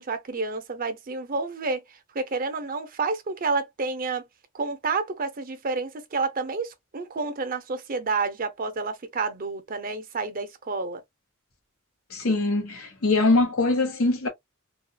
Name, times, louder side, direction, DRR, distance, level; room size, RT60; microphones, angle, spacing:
voice 1, 0.0-4.2 4.5-11.0, right 4 dB, 40° right, 0.6 m, -29 dB
voice 2, 12.1-14.3, left 2 dB, 80° left, 1.4 m, -22 dB
4.1 x 2.3 x 2.3 m
head